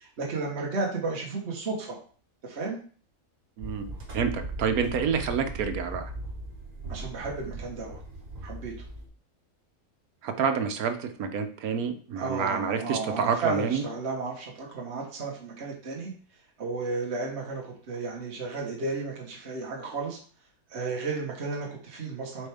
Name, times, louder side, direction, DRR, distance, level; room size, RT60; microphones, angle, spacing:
voice 1, 0.0-2.0 2.4-2.8 6.9-8.0 8.4-8.9 12.2-16.1 16.6-20.2 20.7-22.5, right 3 dB, 50° right, -1 dB, 1.5 m, -33 dB
sound 1, 3.6-9.1, right 2 dB, 65° right, 2.1 m, -39 dB
voice 2, 4.1-6.1 10.2-13.8, right 6 dB, 90° right, 7 dB, 1.3 m, -28 dB
7.9 x 4.5 x 3.5 m, 0.43 s
omnidirectional pair, 1.5 m